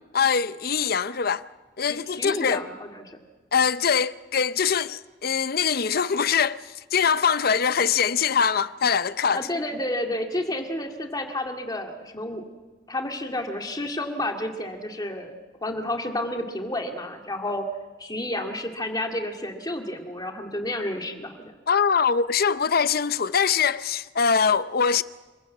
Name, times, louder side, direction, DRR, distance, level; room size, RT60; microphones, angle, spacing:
voice 1, 0.1-1.4 1.8-2.6 3.5-6.6 6.9-9.5 21.7-25.0, left 6 dB, 50° left, 0.6 m, -23 dB
voice 2, 1.9-3.2 9.3-12.4 12.9-15.4 15.6-17.6 18.0-21.5, left 1 dB, 20° left, 2.1 m, -30 dB
27.0 x 15.0 x 8.3 m
head